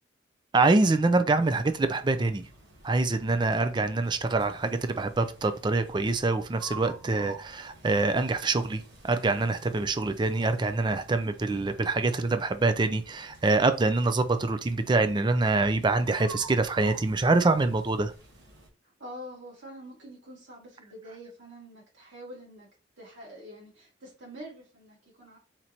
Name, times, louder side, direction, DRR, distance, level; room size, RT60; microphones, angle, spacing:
voice 1, 0.5-2.5 2.8-18.1, right 3 dB, 25° right, 0.4 m, -25 dB
sound 1, 1.3-18.7, right 3 dB, 60° right, 1.4 m, -50 dB
voice 2, 19.0-22.7 23.0-25.4, equal, 85° right, 2.2 m, -46 dB
4.3 x 3.0 x 3.9 m
head